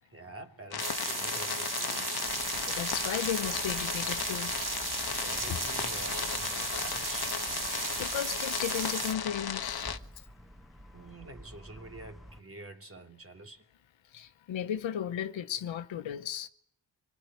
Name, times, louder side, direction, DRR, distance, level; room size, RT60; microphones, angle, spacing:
voice 1, 0.0-2.4 5.0-7.3 10.9-13.7, right 2 dB, 30° right, 3.1 m, -48 dB
sound 1, 0.7-10.0, left 7 dB, 55° left, 1.2 m, -36 dB
sound 2, 0.8-9.1, right 4 dB, 45° right, 2.0 m, -35 dB
sound 3, 2.2-12.4, equal, ahead, 1.5 m, -51 dB
voice 2, 2.7-4.5 5.5-5.6 7.7-9.9 14.1-16.5, left 9 dB, 90° left, 1.1 m, -35 dB
25.5 x 19.0 x 9.4 m
cardioid pair, 55°, 44 cm